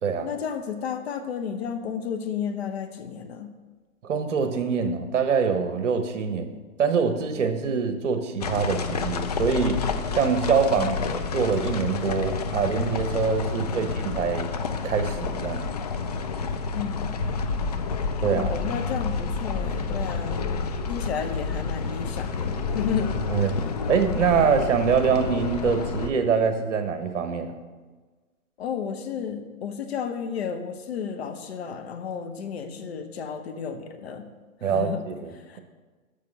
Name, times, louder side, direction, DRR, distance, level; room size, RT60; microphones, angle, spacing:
voice 1, 0.2-3.5 10.7-11.1 13.5-13.9 16.7-17.1 18.3-20.5 20.9-23.7 28.6-34.3 34.6-35.0 35.3-35.6, left 7 dB, 45° left, 7 dB, 1.0 m, -32 dB
voice 2, 4.0-9.8 10.1-14.5 14.8-15.7 18.2-18.5 23.3-23.6 23.9-27.5 34.6-35.6, right 6 dB, 55° right, 8 dB, 1.1 m, -24 dB
sound 1, 8.4-26.1, left 4 dB, 30° left, 0.4 m, -29 dB
6.8 x 6.7 x 6.6 m, 1.4 s
figure-of-eight pair, 130°, 43 cm